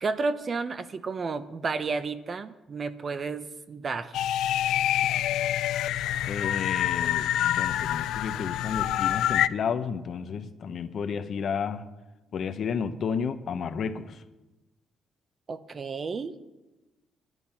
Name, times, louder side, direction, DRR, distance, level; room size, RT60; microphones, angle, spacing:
voice 1, 0.0-4.3 15.5-16.3, right 4 dB, 40° right, 12 dB, 0.7 m, -32 dB
sound 1, 4.1-9.5, left 12 dB, 85° left, 0.3 m, -26 dB
voice 2, 6.3-11.8 12.3-14.2, left 6 dB, 55° left, 11 dB, 0.8 m, -32 dB
11.0 x 10.5 x 5.7 m, 1.1 s
cardioid pair, 105°, 0 cm